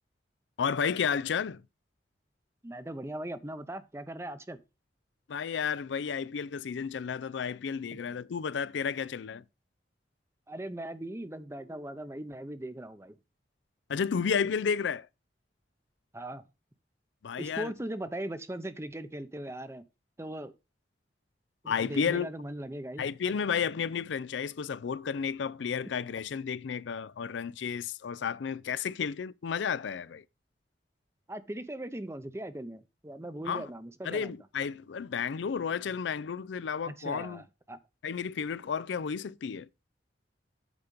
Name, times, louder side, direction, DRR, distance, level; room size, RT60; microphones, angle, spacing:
voice 1, 0.6-1.6 5.3-9.4 13.9-15.1 17.2-17.7 21.7-22.3 23.0-30.2 33.5-33.7 34.0-37.4 38.0-39.7, left 6 dB, 85° left, 0.4 m, -32 dB
voice 2, 2.6-4.6 7.9-8.0 10.5-13.2 16.1-16.4 17.4-19.8 20.2-20.5 21.6-23.1 31.3-34.4 36.9-37.8, right 1 dB, 15° right, 0.6 m, -39 dB
8.3 x 5.0 x 5.2 m
head